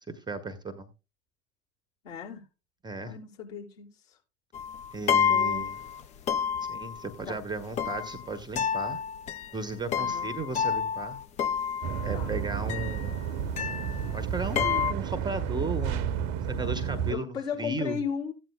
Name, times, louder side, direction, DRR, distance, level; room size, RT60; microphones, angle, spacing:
voice 1, 0.1-0.9 2.8-3.1 4.9-5.8 6.7-9.0 9.5-11.2 12.0-13.2 14.1-18.0, right 2 dB, 10° right, 0.9 m, -35 dB
voice 2, 2.0-2.4 3.0-4.2 5.2-5.7 7.2-7.5 9.9-10.3 12.1-12.4 17.1-18.3, left 7 dB, 50° left, 4.8 m, -36 dB
sound 1, 4.5-6.0 6.3-7.1 7.7-12.3 12.7-14.2 14.5-14.9, left 7 dB, 20° left, 0.4 m, -29 dB
sound 2, 11.8-17.1, right 8 dB, 40° right, 0.8 m, -31 dB
15.5 x 9.1 x 2.2 m
figure-of-eight pair, 80°, 39 cm